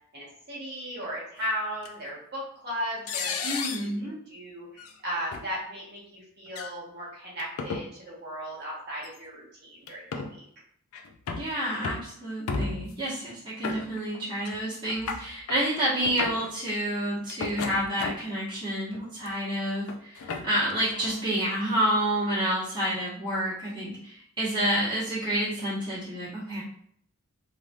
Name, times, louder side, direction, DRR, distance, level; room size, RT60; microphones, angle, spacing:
voice 1, 0.1-10.4, equal, 50° right, -6 dB, 1.1 m, -36 dB
sound 1, 1.8-1.9 3.1-3.9 4.8-4.9 5.3-5.4 6.5-6.7 7.4-7.9 9.0-9.2 9.9-10.3 10.9-11.5 11.8-12.1 12.5-13.0 13.6-14.2 14.4-14.6 14.8-15.6 16.0-16.5 17.3-18.4 18.9-19.3 19.9-21.2, left 4 dB, 75° left, 0.4 m, -34 dB
voice 2, 3.4-4.2 11.3-26.6, right 1 dB, 20° right, -9 dB, 1.1 m, -29 dB
3.2 x 2.6 x 2.3 m, 0.65 s
head